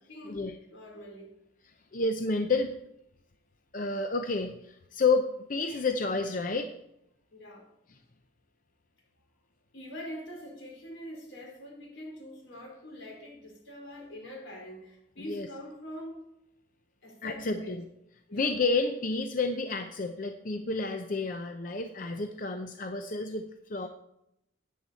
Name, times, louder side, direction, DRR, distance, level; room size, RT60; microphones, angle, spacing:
voice 1, 0.1-0.4 0.7-1.3 7.3-7.7 9.7-16.3 17.0-17.8 18.3-18.5, equal, 80° left, -1 dB, 4.6 m, -44 dB
voice 2, 1.9-2.8 3.7-6.7 15.3-15.5 17.2-17.8 18.3-23.9, left 3 dB, 45° left, 6 dB, 0.6 m, -30 dB
13.5 x 9.4 x 4.2 m, 0.81 s
head